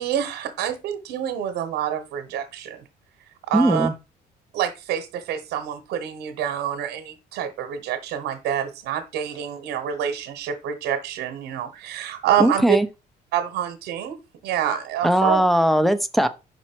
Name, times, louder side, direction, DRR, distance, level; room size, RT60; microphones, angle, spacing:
voice 1, 0.0-2.8 3.5-3.9 4.5-12.8 13.3-14.2 14.4-15.4, right 9 dB, 85° right, 1.0 m, -27 dB
voice 2, 3.5-3.9 12.4-12.9 15.0-16.3, right 1 dB, ahead, 0.6 m, -19 dB
5.6 x 4.2 x 4.5 m
cardioid pair, 110°, 17 cm